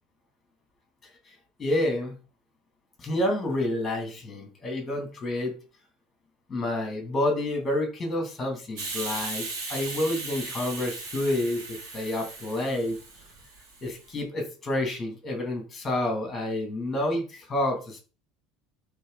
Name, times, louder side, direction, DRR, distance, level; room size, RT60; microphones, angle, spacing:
voice 1, 1.6-2.1 3.0-5.5 6.5-13.0 13.8-18.0, left 1 dB, 10° left, 2 dB, 3.0 m, -29 dB
Hiss, 8.8-14.1, right 3 dB, 60° right, 2.8 m, -37 dB
12.0 x 4.0 x 4.2 m, 0.35 s
cardioid pair, 175°, 0 cm